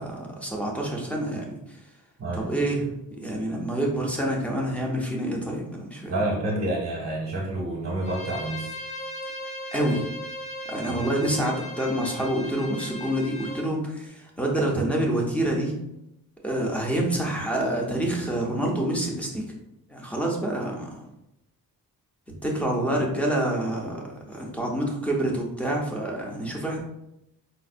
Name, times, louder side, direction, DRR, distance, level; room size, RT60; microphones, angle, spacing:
voice 1, 0.0-1.6 2.4-2.8 3.2-6.1 9.7-10.1 10.7-15.7 16.4-19.4 19.9-21.0 22.4-26.8, right 1 dB, 5° left, -1 dB, 0.5 m, -27 dB
voice 2, 2.2-2.5 6.1-8.8 10.9-11.2, right 1 dB, 45° right, -2 dB, 0.7 m, -29 dB
Bowed string instrument, 8.0-13.7, left 1 dB, 65° left, 0.8 m, -37 dB
4.0 x 2.1 x 2.5 m, 0.85 s
wide cardioid pair, 135°, 37 cm